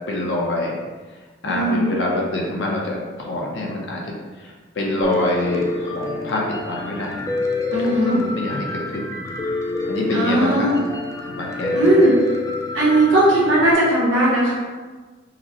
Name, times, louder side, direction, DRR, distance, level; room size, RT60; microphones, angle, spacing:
voice 1, 0.1-0.8 1.4-7.2 7.8-9.1 9.9-10.7 11.2-12.0, left 1 dB, 65° left, -2 dB, 0.7 m, -26 dB
voice 2, 1.4-1.9 7.7-8.2 10.1-10.8 11.7-12.1 12.7-14.5, right 1 dB, 70° right, -8 dB, 1.2 m, -17 dB
Piano, 5.0-13.7, left 3 dB, 15° left, 0.3 m, -27 dB
4.9 x 2.1 x 2.9 m, 1.3 s
head